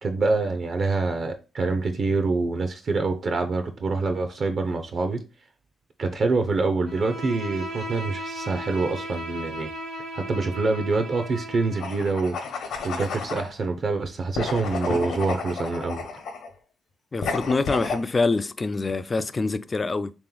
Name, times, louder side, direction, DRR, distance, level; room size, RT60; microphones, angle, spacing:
voice 1, 0.0-5.2 6.0-9.7 10.1-12.4 12.8-16.0, right 3 dB, 50° right, 0.6 m, -26 dB
Bowed string instrument, 6.8-12.0, equal, 75° right, 1.2 m, -36 dB
sound 1, 11.8-13.5 14.3-16.5 17.2-18.0, left 4 dB, 75° left, 0.9 m, -31 dB
voice 2, 17.1-20.1, left 3 dB, 30° left, 0.3 m, -25 dB
3.3 x 3.0 x 3.8 m
cardioid pair, 90°, 0 cm